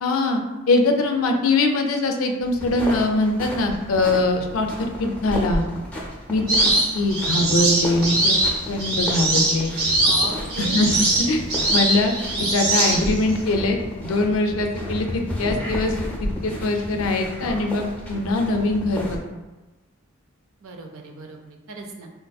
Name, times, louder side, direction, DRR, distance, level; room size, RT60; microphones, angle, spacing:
voice 1, 0.0-0.4 0.7-4.7 5.0-5.6 6.3-6.6 7.0-8.4 8.7-9.7 10.6-10.9 11.3-11.4 11.7-12.1 12.5-13.8 14.0-15.9 16.2-19.2, left 2 dB, 75° left, 4 dB, 0.4 m, -22 dB
sound 1, 2.4-19.2, left 1 dB, 5° left, 0.5 m, -32 dB
sound 2, 6.5-13.3, right 1 dB, 50° right, 0.9 m, -22 dB
voice 2, 10.0-10.9 20.6-22.1, right 2 dB, 75° right, 3 dB, 0.5 m, -37 dB
3.7 x 2.6 x 2.3 m, 1.2 s
head